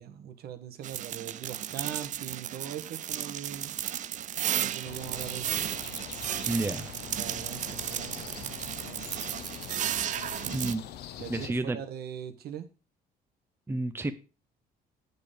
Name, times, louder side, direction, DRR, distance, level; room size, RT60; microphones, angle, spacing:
voice 1, 0.0-3.7 4.5-5.7 7.0-9.3 11.2-12.7, right 9 dB, 70° right, 1.4 m, -41 dB
sound 1, 0.8-10.8, right 11 dB, 45° right, 0.5 m, -34 dB
sound 2, 4.8-11.5, left 11 dB, 75° left, 1.0 m, -43 dB
voice 2, 6.5-6.9 10.5-10.9 11.3-11.8 13.7-14.1, right 2 dB, 15° right, 0.9 m, -30 dB
8.3 x 6.8 x 5.2 m
cardioid pair, 110°, 17 cm